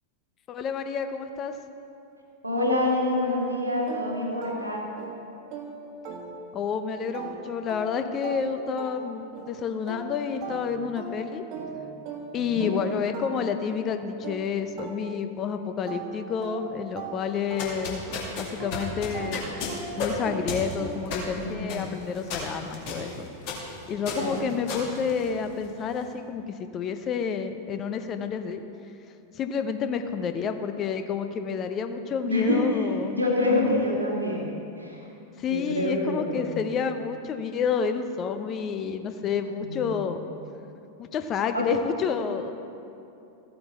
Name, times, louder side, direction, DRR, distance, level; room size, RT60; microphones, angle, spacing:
voice 1, 0.5-1.6 6.5-9.2 9.5-11.4 12.3-18.0 18.4-19.5 20.0-23.3 23.9-28.6 29.3-33.2 35.4-40.2 41.0-42.5, left 6 dB, 30° left, 8 dB, 0.6 m, -29 dB
voice 2, 2.4-4.8 12.3-12.8 21.4-21.8 24.1-24.4 32.3-34.5 34.8-35.1 35.5-36.6 39.6-40.0 41.5-41.7, left 2 dB, 85° right, -2 dB, 1.9 m, -27 dB
sound 1, 3.9-6.7 7.1-15.5 15.9-21.3, right 4 dB, 40° right, 1.4 m, -40 dB
sound 2, 17.4-25.8, left 3 dB, 45° left, 1.9 m, -34 dB
14.5 x 8.6 x 3.6 m, 2.7 s
figure-of-eight pair, 90°, 0 cm